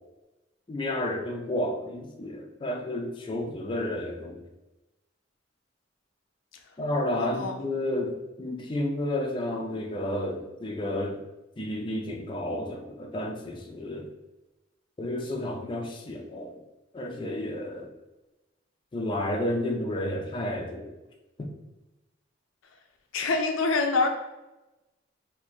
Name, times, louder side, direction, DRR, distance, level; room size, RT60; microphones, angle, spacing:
voice 1, 0.7-4.4 6.8-11.2 11.6-14.1 15.0-16.6 16.9-17.9 18.9-20.9 21.4-21.5, left 1 dB, 25° left, 2 dB, 0.4 m, -31 dB
voice 2, 7.2-7.5 23.1-24.1, left 3 dB, 90° left, 3 dB, 0.5 m, -25 dB
2.7 x 2.5 x 4.2 m, 1.0 s
head